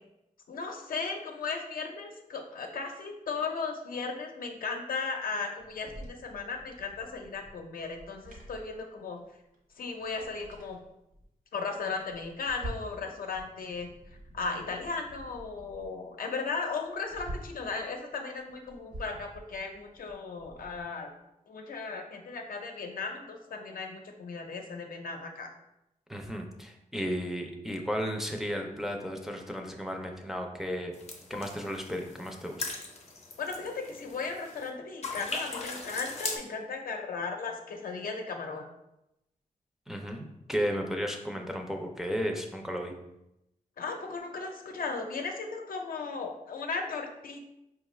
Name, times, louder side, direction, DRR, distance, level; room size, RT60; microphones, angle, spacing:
voice 1, 0.5-9.2 9.8-10.8 11.5-13.9 14.3-21.1 21.5-25.5 33.4-38.7 43.8-47.4, left 4 dB, 90° left, 3 dB, 0.6 m, -36 dB
sound 1, 5.6-9.3 9.5-9.6 10.0-11.2 11.7-13.0 13.3-15.9 16.3-16.4 16.7-17.7 18.3-20.8, right 1 dB, 75° right, 0.9 m, -47 dB
voice 2, 26.1-30.9 31.3-32.6 39.9-42.9, equal, 5° right, 2 dB, 0.4 m, -34 dB
sound 2, 30.9-34.7 35.0-36.4, left 3 dB, 50° left, 0.6 m, -39 dB
5.1 x 2.3 x 3.1 m, 0.87 s
wide cardioid pair, 155°, 14 cm